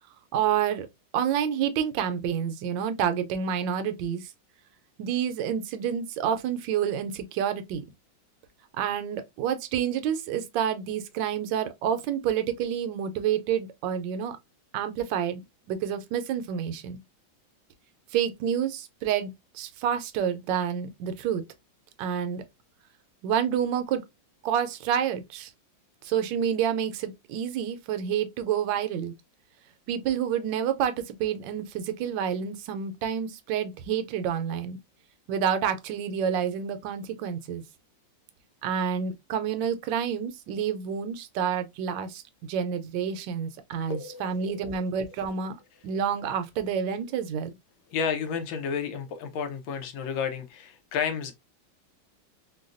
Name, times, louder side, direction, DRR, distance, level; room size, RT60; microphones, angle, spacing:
voice 1, 0.3-0.9 1.1-4.2 5.0-7.8 8.7-14.4 14.7-15.4 15.7-17.0 18.1-21.4 22.0-22.4 23.2-24.0 24.4-25.5 26.0-29.1 29.9-34.8 35.3-37.6 38.6-42.2 42.5-45.5 45.8-47.5, right 8 dB, 75° right, 1.2 m, -28 dB
voice 2, 43.9-44.4 47.9-51.3, left 6 dB, 80° left, 1.5 m, -31 dB
3.9 x 2.2 x 2.4 m
omnidirectional pair, 2.1 m